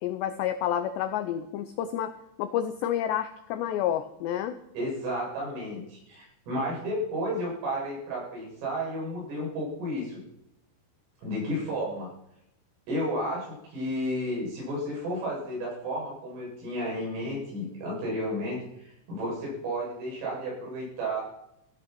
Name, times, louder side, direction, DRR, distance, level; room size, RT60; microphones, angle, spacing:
voice 1, 0.0-4.6, left 10 dB, 90° left, 9 dB, 2.4 m, -29 dB
voice 2, 4.8-10.2 11.2-12.1 12.9-21.2, equal, 70° right, -4 dB, 10.5 m, -32 dB
16.5 x 14.0 x 6.1 m, 0.80 s
omnidirectional pair, 6.0 m